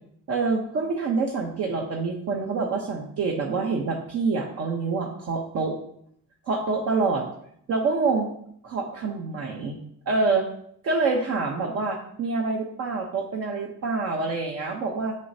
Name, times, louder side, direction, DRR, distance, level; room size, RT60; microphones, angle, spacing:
voice 1, 0.3-5.7 6.5-7.2 7.7-8.3 8.6-9.8 10.1-10.4 10.8-15.2, right 4 dB, 50° right, 0 dB, 0.9 m, -26 dB
8.7 x 6.4 x 2.8 m, 0.67 s
cardioid pair, 170°, 32 cm